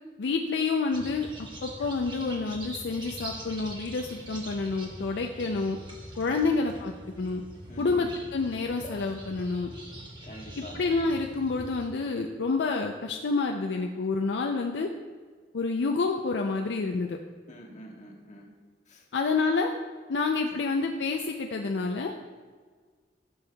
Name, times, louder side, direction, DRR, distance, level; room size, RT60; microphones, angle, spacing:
voice 1, 0.2-1.3 1.6-5.8 6.2-6.9 7.2-7.4 7.8-9.7 10.7-14.9 15.5-17.2 19.1-19.7 20.1-22.2, left 4 dB, 70° left, 3 dB, 0.4 m, -28 dB
sound 1, 0.9-11.9, right 1 dB, 25° right, 1.2 m, -43 dB
voice 2, 7.7-8.1 10.2-10.8 17.5-18.5 18.9-19.1 20.5-20.6, equal, 45° left, -1 dB, 1.3 m, -46 dB
12.0 x 6.2 x 2.2 m, 1.5 s
head